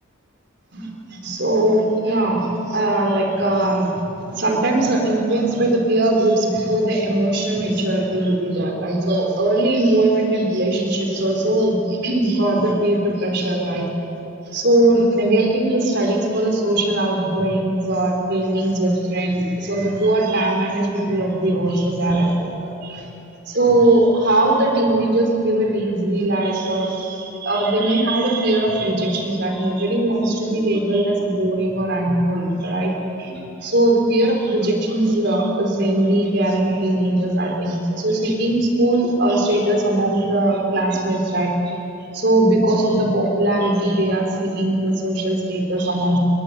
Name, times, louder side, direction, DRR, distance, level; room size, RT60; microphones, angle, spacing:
voice 1, 0.7-3.9 4.3-13.9 14.5-23.0 23.5-41.7 42.1-46.2, right 1 dB, 50° right, 1 dB, 4.6 m, -20 dB
29.0 x 22.0 x 8.6 m, 3.0 s
head